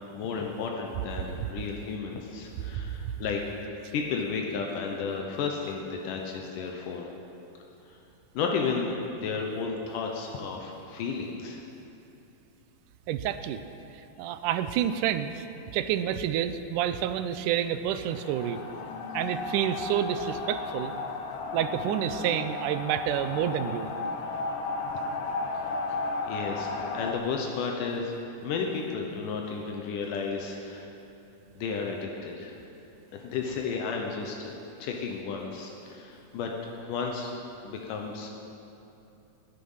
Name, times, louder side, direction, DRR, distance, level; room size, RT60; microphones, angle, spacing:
voice 1, 0.1-3.4 3.9-7.1 8.3-11.6 26.3-28.1 28.4-30.9 31.6-32.5 33.2-34.5 34.8-37.3 37.6-38.3, left 5 dB, 85° left, 1 dB, 2.6 m, -33 dB
voice 2, 13.1-13.6 14.2-15.4 15.7-18.6 19.1-20.9 21.5-23.9, right 10 dB, 85° right, 11 dB, 2.1 m, -28 dB
sound 1, 18.0-27.1, left 3 dB, 70° left, 1.3 m, -34 dB
18.5 x 10.5 x 5.7 m, 2.9 s
omnidirectional pair, 3.7 m